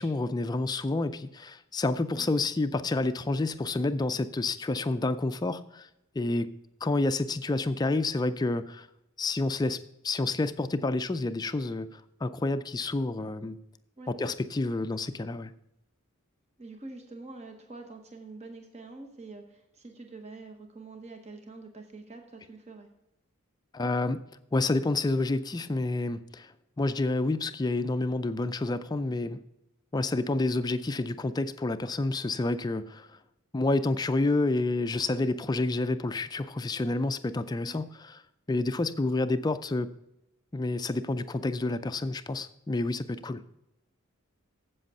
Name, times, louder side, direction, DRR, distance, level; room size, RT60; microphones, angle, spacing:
voice 1, 0.0-5.9 6.2-6.5 6.8-8.9 9.2-9.8 10.0-13.6 14.1-15.5 23.7-24.2 24.5-26.5 26.8-29.4 29.9-33.1 33.5-38.2 38.5-39.9 40.5-43.4, left 2 dB, 20° left, 11 dB, 0.3 m, -29 dB
voice 2, 16.6-22.9 37.7-37.8, right 3 dB, 30° right, 5 dB, 0.9 m, -46 dB
8.0 x 7.7 x 5.4 m, 0.88 s
head